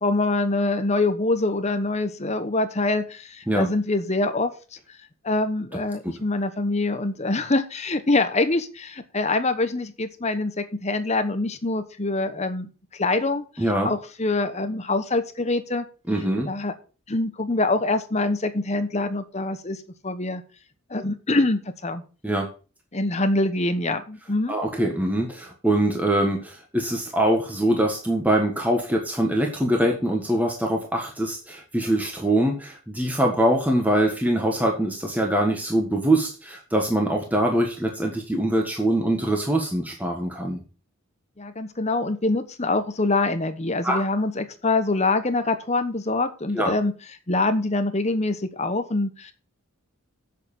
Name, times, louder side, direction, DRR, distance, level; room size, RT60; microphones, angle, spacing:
voice 1, 0.0-4.5 5.2-15.9 16.5-16.7 17.1-20.4 20.9-22.0 22.9-24.5 41.4-46.9 47.3-49.3, left 2 dB, 30° left, 9 dB, 1.0 m, -25 dB
voice 2, 13.6-13.9 16.1-16.5 22.2-22.5 24.5-40.6 43.8-44.0 46.5-46.7, right 1 dB, 5° right, 1 dB, 1.4 m, -23 dB
8.2 x 6.7 x 6.5 m, 0.35 s
head